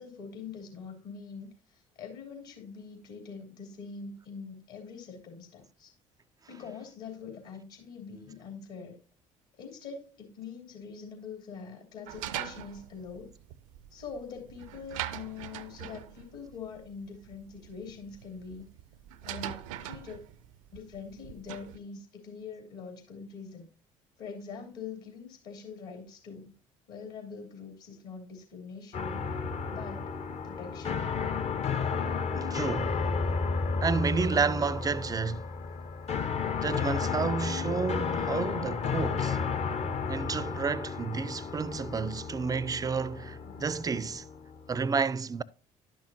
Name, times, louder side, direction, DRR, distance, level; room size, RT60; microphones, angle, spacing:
voice 1, 0.0-5.9 6.5-9.0 9.6-13.3 13.9-18.7 19.2-20.3 20.7-23.7 24.2-26.5 26.9-29.3 29.7-30.1 30.4-31.1 42.6-43.7 45.1-45.2, left 5 dB, 60° left, 2.9 m, -44 dB
sound 1, 12.1-21.8, right 12 dB, 75° right, 0.5 m, -42 dB
sound 2, 28.9-44.9, left 5 dB, 40° left, 0.8 m, -32 dB
voice 2, 32.3-33.0 33.8-35.5 36.6-39.4 40.1-44.2 44.7-45.4, right 5 dB, 20° right, 0.4 m, -31 dB
11.5 x 6.2 x 2.7 m
figure-of-eight pair, 55°, 17 cm